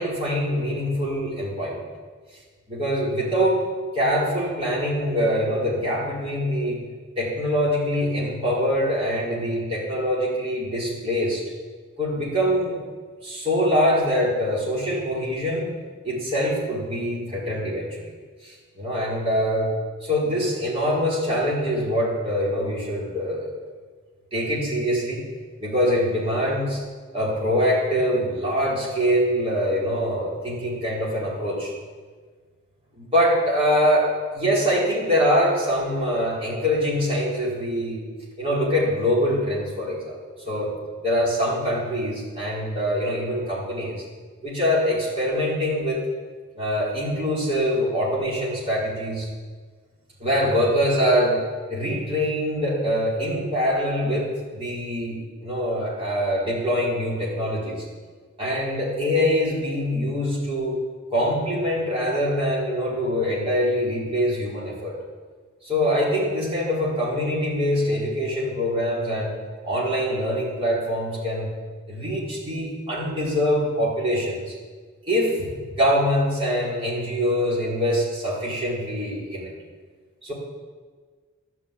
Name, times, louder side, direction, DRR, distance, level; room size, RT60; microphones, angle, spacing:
voice 1, 0.0-1.8 2.7-3.6 3.9-6.8 7.2-11.4 12.0-12.8 13.2-15.8 16.0-18.0 18.4-19.7 20.0-23.6 24.3-25.2 25.6-26.8 27.1-31.7 32.9-38.0 38.4-40.2 40.4-40.7 41.0-44.0 44.4-46.0 46.5-49.3 50.2-57.8 58.4-60.8 61.1-65.0 65.6-69.3 69.6-71.5 71.9-74.5 75.1-79.5 80.2-80.3, equal, 30° right, -6 dB, 4.6 m, -24 dB
12.5 x 10.0 x 8.5 m, 1.5 s
head